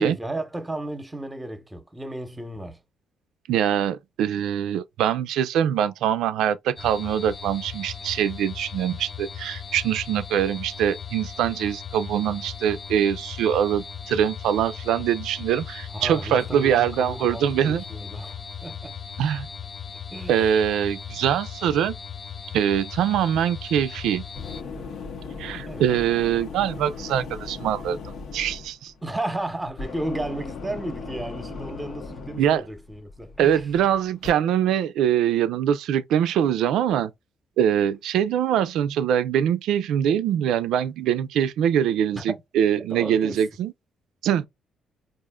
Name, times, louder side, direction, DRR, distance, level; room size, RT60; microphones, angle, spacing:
voice 1, 0.0-2.8 15.9-19.0 20.1-20.4 25.7-25.9 29.0-33.6 42.2-42.4 42.9-43.4, right 1 dB, 15° right, 0.9 m, -33 dB
voice 2, 3.5-17.8 19.2-19.5 20.3-22.0 22.5-24.2 25.4-28.9 32.4-32.6 33.4-37.1 37.6-43.7 44.2-44.5, right 9 dB, 85° right, 0.4 m, -23 dB
sound 1, 6.8-24.6, left 7 dB, 40° left, 0.4 m, -38 dB
sound 2, 23.9-34.3, left 4 dB, 65° left, 0.7 m, -38 dB
4.9 x 2.5 x 2.2 m
cardioid pair, 90°, 0 cm